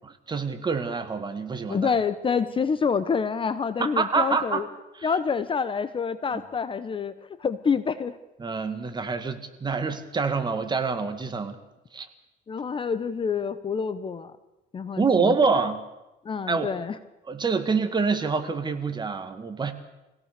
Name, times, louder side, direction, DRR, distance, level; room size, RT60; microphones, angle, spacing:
voice 1, 0.3-1.9 3.8-4.6 5.0-5.1 6.3-6.4 8.4-11.6 11.9-12.1 15.0-15.8 16.5-16.7 17.3-19.7, right 4 dB, 25° right, 8 dB, 2.0 m, -26 dB
voice 2, 1.7-4.7 5.0-7.1 7.4-8.2 12.5-14.3 14.7-15.7 16.2-16.9, left 6 dB, 25° left, 12 dB, 0.9 m, -27 dB
24.0 x 17.0 x 6.8 m, 1.0 s
cardioid pair, 120°, 19 cm